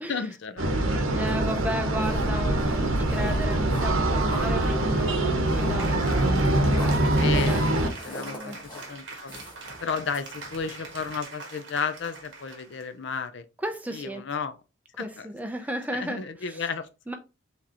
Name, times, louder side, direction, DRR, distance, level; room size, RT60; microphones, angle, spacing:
voice 1, 0.1-1.0 7.1-9.4 9.8-13.4 13.9-14.5 15.0-15.3 15.9-16.9, left 5 dB, 60° left, 0.5 m, -33 dB
sound 1, 0.6-7.9, right 1 dB, 80° right, 0.9 m, -24 dB
voice 2, 1.1-6.0 7.3-7.6 8.2-8.6 13.6-14.2 15.0-16.6 17.1-17.2, equal, 10° right, 0.5 m, -34 dB
sound 2, 1.2-11.2, left 1 dB, 20° left, 1.3 m, -44 dB
Cheering / Applause, 5.3-12.8, right 2 dB, 60° right, 1.4 m, -38 dB
4.8 x 3.4 x 2.9 m
head